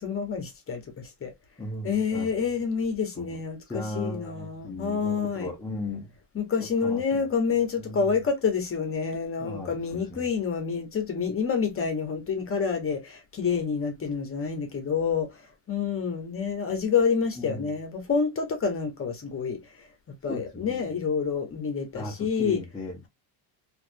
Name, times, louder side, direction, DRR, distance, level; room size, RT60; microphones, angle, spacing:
voice 1, 0.0-1.3 1.8-5.5 6.3-15.4 15.7-19.9 20.2-22.6, left 6 dB, 30° left, 1.0 m, -28 dB
voice 2, 1.6-2.3 3.2-3.3 3.7-6.1 6.8-7.0 7.5-8.2 9.4-10.3 17.4-17.7 20.3-20.9 21.9-23.1, left 1 dB, 10° left, 0.6 m, -37 dB
3.2 x 2.6 x 2.6 m
cardioid pair, 135°, 48 cm